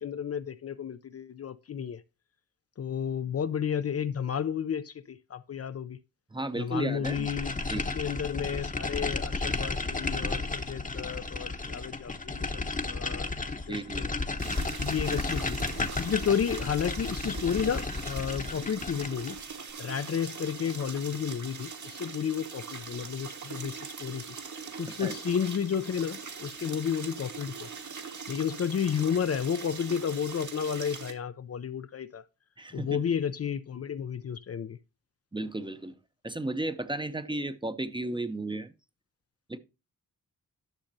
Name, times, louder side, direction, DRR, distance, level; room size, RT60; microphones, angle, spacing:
voice 1, 0.0-2.0 2.8-6.0 6.6-14.1 14.8-15.6 16.0-19.4 19.8-24.2 24.5-27.7 28.3-32.2 32.7-34.8, left 7 dB, 45° left, 0.5 m, -32 dB
voice 2, 6.3-7.3 7.7-7.9 13.7-14.1 24.9-25.1 32.6-33.0 35.3-35.9 36.2-38.7 39.5-39.6, right 2 dB, 15° right, 0.7 m, -34 dB
sound 1, 7.0-19.4, left 3 dB, 25° left, 0.9 m, -33 dB
sound 2, 14.4-31.1, right 5 dB, 60° right, 1.6 m, -41 dB
11.5 x 6.4 x 2.6 m
wide cardioid pair, 95°, 34 cm